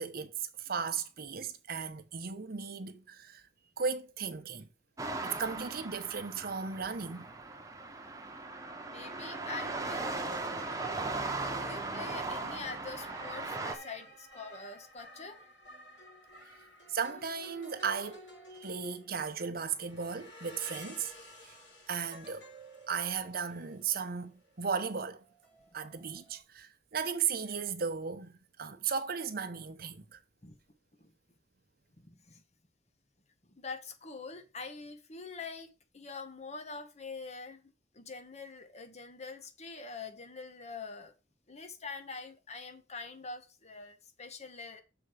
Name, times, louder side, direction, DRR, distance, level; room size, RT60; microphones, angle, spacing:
voice 1, 0.0-3.5 3.8-4.7 5.2-7.2 16.9-21.1 21.4-21.5 21.9-22.5 22.9-25.2 25.7-30.2, right 6 dB, 55° right, 0.9 m, -36 dB
sound 1, 5.0-13.7, right 3 dB, 20° right, 1.1 m, -38 dB
voice 2, 8.9-10.2 11.4-15.5 30.4-30.6 31.0-31.1 32.0-32.4 33.5-41.1 41.5-44.8, left 4 dB, 40° left, 1.3 m, -45 dB
sound 2, 10.2-26.4, equal, 70° left, 5.7 m, -53 dB
6.9 x 4.6 x 6.3 m
head